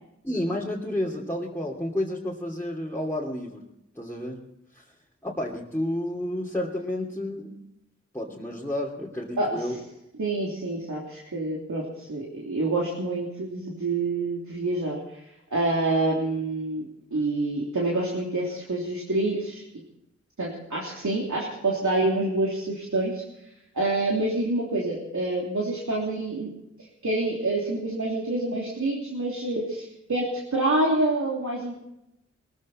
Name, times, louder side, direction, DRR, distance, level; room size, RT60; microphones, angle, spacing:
voice 1, 0.2-3.6 4.0-4.4 4.7-4.8 5.2-7.5 8.1-9.8, left 1 dB, 10° left, -5 dB, 2.8 m, -30 dB
voice 2, 9.4-9.8 10.2-16.9 17.1-19.6 20.4-23.2 23.7-26.5 27.0-30.2 30.5-31.8, right 2 dB, 85° right, -4 dB, 3.2 m, -27 dB
21.5 x 14.0 x 4.3 m, 0.85 s
wide cardioid pair, 60°, 29 cm